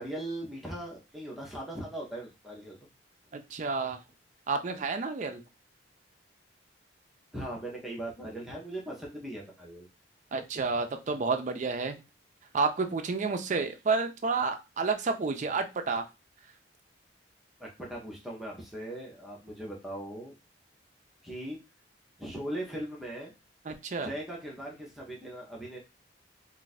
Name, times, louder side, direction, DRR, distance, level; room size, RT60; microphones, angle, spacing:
voice 1, 0.0-2.9 7.3-9.9 17.6-20.4 21.2-21.6 22.2-23.3 24.0-25.8, right 1 dB, ahead, -3 dB, 0.6 m, -39 dB
voice 2, 3.3-4.0 4.5-5.4 10.3-12.0 12.5-16.1 23.7-24.1, right 4 dB, 40° right, 7 dB, 0.4 m, -30 dB
2.5 x 2.4 x 4.0 m, 0.27 s
head